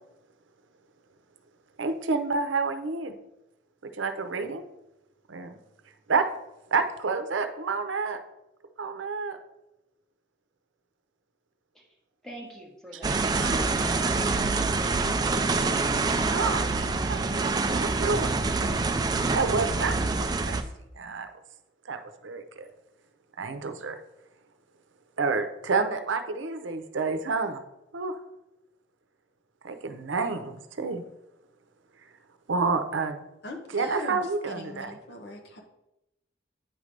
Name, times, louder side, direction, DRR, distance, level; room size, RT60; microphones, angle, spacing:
voice 1, 1.8-3.1 3.8-4.6 5.3-5.5 6.1-6.3 6.7-8.2 8.8-9.4 13.4-13.5 16.3-18.9 19.3-20.6 21.0-21.3 21.9-22.7 23.4-24.0 25.2-27.6 27.9-28.1 29.6-31.0 32.5-33.2 33.7-34.9, right 4 dB, 90° right, 8 dB, 0.7 m, -29 dB
voice 2, 12.2-15.0, right 1 dB, 5° left, -2 dB, 1.3 m, -46 dB
sound 1, 13.0-20.6, right 3 dB, 20° right, 0.3 m, -26 dB
voice 3, 33.4-35.6, left 1 dB, 60° left, 2 dB, 1.1 m, -39 dB
9.2 x 3.3 x 5.2 m, 0.91 s
head